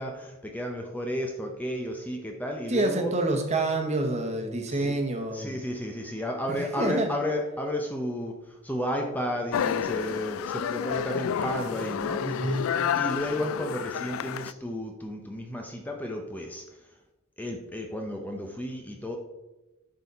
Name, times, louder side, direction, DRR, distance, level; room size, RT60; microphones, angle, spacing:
voice 1, 0.0-3.1 4.7-5.0 5.3-12.6 12.9-16.6 17.4-19.2, equal, 10° left, 2 dB, 0.6 m, -33 dB
voice 2, 2.7-5.6 6.5-7.1 12.2-12.7, right 2 dB, 35° right, 3 dB, 1.2 m, -27 dB
sound 1, 9.5-14.5, left 8 dB, 75° left, 0.3 m, -30 dB
10.5 x 4.1 x 4.1 m, 1.0 s
head